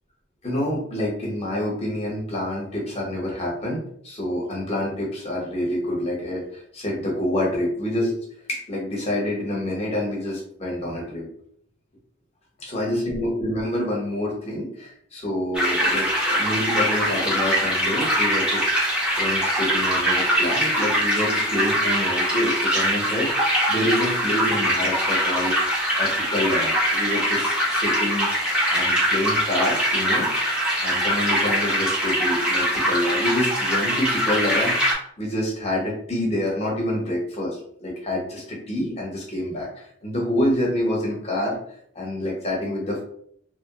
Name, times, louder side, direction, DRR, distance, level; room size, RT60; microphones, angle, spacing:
voice 1, 0.4-8.1 8.5-11.2 12.6-18.9 19.2-25.7 26.0-28.3 28.7-30.3 30.8-34.7 35.2-41.6 41.9-43.0, left 1 dB, 30° left, -3 dB, 1.0 m, -27 dB
sound 1, 15.5-34.9, equal, 5° right, 0.7 m, -22 dB
3.0 x 2.1 x 2.9 m, 0.66 s
head